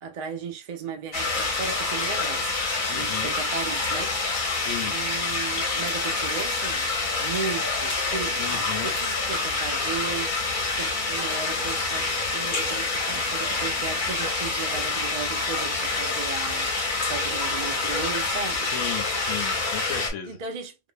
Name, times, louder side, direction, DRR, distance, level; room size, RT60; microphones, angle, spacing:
voice 1, 0.0-6.9 7.2-16.7 17.1-18.7 20.3-20.8, right 6 dB, 75° right, 0.3 m, -36 dB
sound 1, 1.1-20.1, left 3 dB, 45° left, 0.7 m, -27 dB
voice 2, 2.9-3.3 4.5-4.9 8.4-8.9 18.6-20.4, left 9 dB, 70° left, 0.9 m, -35 dB
2.5 x 2.1 x 2.5 m
omnidirectional pair, 1.4 m